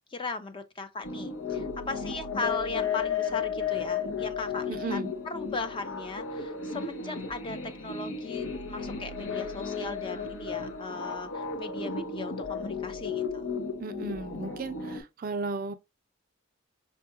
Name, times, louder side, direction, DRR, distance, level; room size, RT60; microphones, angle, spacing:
voice 1, 0.1-5.0 5.2-13.5, left 3 dB, 25° left, 0.4 m, -38 dB
sound 1, 1.0-15.0, left 5 dB, 80° left, 0.7 m, -34 dB
voice 2, 4.7-5.1 13.8-15.7, right 4 dB, 45° right, 0.4 m, -35 dB
5.2 x 2.3 x 2.9 m
head